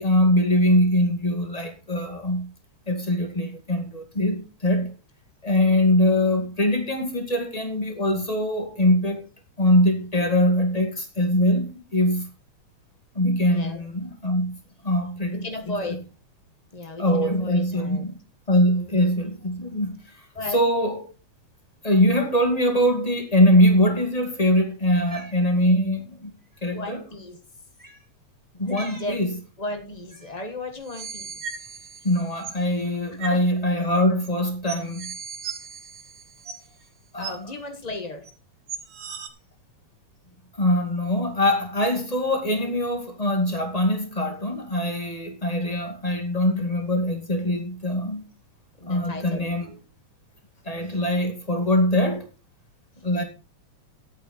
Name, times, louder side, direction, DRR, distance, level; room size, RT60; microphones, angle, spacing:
voice 1, 0.0-2.5 2.9-4.9 5.4-9.3 9.6-12.3 13.1-14.6 14.8-15.8 17.0-18.1 18.5-20.0 20.5-21.0 21.8-26.3 26.6-27.0 28.6-29.3 32.0-35.1 37.1-37.3 40.6-48.2 48.8-49.7 50.6-52.2 53.0-53.2, left 1 dB, 15° left, 1.9 m, -22 dB
voice 2, 13.5-13.8 15.3-16.1 16.7-18.0 18.7-18.9 20.3-20.6 26.7-27.4 28.5-28.6 28.9-29.2 29.6-31.4 33.1-33.4 37.2-38.3 48.8-49.6, left 2 dB, 70° left, 0.4 m, -35 dB
Cat, 25.0-25.4 26.4-26.6 27.7-28.0 28.6-29.1 30.1-30.4, right 2 dB, 10° right, 1.6 m, -44 dB
sound 1, 30.8-32.6 33.2-33.4 34.2-34.3 34.7-36.8 37.2-37.3 38.2-38.3 38.7-39.3, right 6 dB, 65° right, 2.7 m, -37 dB
12.0 x 8.6 x 4.4 m
omnidirectional pair, 3.4 m